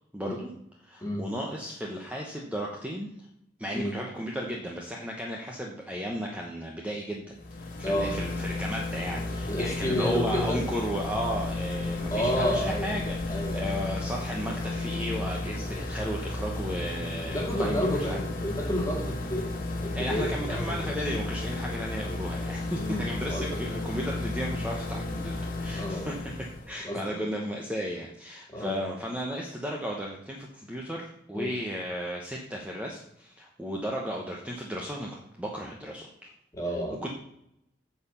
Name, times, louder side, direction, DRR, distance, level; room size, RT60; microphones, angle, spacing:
voice 1, 0.1-0.5 0.8-3.1 3.6-18.2 18.5-18.6 19.9-36.3 37.0-37.1, equal, 5° right, -1 dB, 1.0 m, -34 dB
sound 1, 7.3-26.7, left 2 dB, 45° left, 1.8 m, -33 dB
voice 2, 7.8-8.2 9.5-10.6 12.1-12.9 13.3-13.8 17.3-20.9 22.8-23.6 25.7-26.2 26.8-27.2 28.5-28.8 31.3-31.6 36.5-37.0, equal, 15° left, -1 dB, 2.3 m, -30 dB
9.2 x 4.8 x 7.0 m, 0.76 s
head